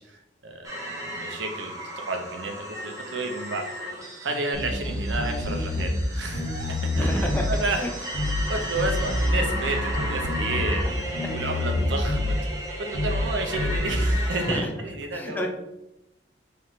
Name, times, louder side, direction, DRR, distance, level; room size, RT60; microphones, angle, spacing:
voice 1, 0.0-1.7 2.1-3.7 4.2-7.8 8.5-10.8 11.3-12.4 12.8-15.5, right 2 dB, 85° right, 4 dB, 0.7 m, -31 dB
sound 1, 0.6-14.6, equal, 20° right, 0.9 m, -35 dB
sound 2, 4.5-6.1 6.3-7.6 8.1-8.5 8.7-10.9 11.1-12.4 12.9-13.3 13.5-14.1, left 1 dB, 50° left, 1.4 m, -27 dB
voice 2, 7.0-7.5 7.8-7.9 10.6-11.6 13.0-13.2 14.5-14.7 15.1-15.5, equal, 10° left, 2 dB, 0.4 m, -31 dB
4.0 x 3.3 x 3.1 m, 0.91 s
head